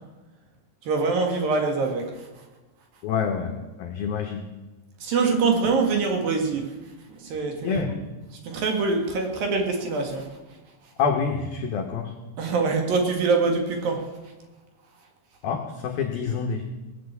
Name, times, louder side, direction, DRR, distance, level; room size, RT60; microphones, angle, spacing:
voice 1, 0.9-2.0 5.0-6.6 7.2-8.0 8.4-10.3 12.4-14.0, right 4 dB, 55° right, 3 dB, 3.0 m, -24 dB
voice 2, 3.0-3.5 3.8-4.4 7.6-7.9 11.0-12.1 15.4-16.6, left 6 dB, 80° left, 4 dB, 2.1 m, -27 dB
18.5 x 9.0 x 8.2 m, 1.2 s
omnidirectional pair, 6.0 m